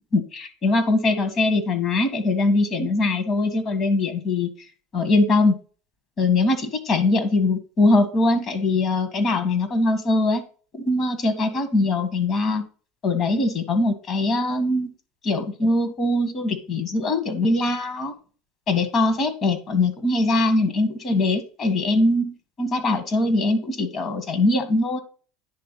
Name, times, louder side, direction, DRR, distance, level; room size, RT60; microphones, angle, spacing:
voice 1, 0.1-4.5 4.9-5.5 6.2-10.4 10.7-12.6 13.0-14.9 15.2-18.1 18.7-22.3 22.6-25.0, left 2 dB, 40° left, 9 dB, 1.8 m, -22 dB
10.0 x 3.5 x 5.7 m, 0.38 s
supercardioid pair, 115°, 0 cm